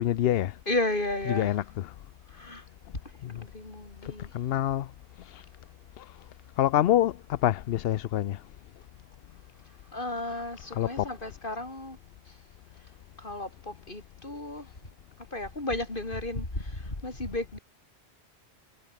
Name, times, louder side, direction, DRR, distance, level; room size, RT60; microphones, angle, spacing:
voice 1, 0.0-0.6 1.3-1.9 4.0-4.9 5.2-5.5 6.0-6.1 6.6-8.4 10.7-11.1, left 12 dB, 65° left, 0.8 m, -26 dB
voice 2, 0.7-1.5 2.3-2.6 3.3-4.3 9.9-12.0 13.2-14.7 15.3-17.6, left 2 dB, 50° left, 4.7 m, -33 dB
omnidirectional pair, 1.1 m